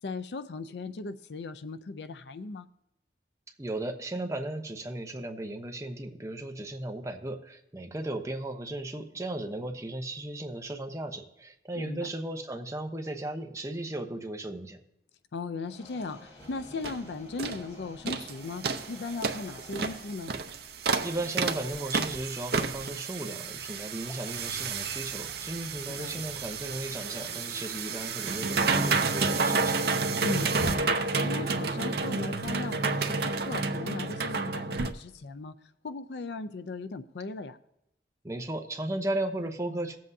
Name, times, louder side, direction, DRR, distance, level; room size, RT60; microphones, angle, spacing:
voice 1, 0.0-2.7 11.7-12.1 15.3-20.3 26.0-26.3 30.2-35.5 35.8-37.6, left 3 dB, 75° left, 0.5 m, -38 dB
voice 2, 3.6-14.8 21.0-29.8 38.2-40.0, right 1 dB, 15° right, 0.8 m, -35 dB
sound 1, 15.6-20.8, left 1 dB, 35° left, 1.3 m, -51 dB
sound 2, 16.4-16.5 16.8-17.0 17.4-17.6 18.1-18.3 18.6-34.9, right 4 dB, 65° right, 0.7 m, -30 dB
sound 3, 24.1-30.7, right 1 dB, 5° left, 1.2 m, -51 dB
18.5 x 7.6 x 2.7 m
head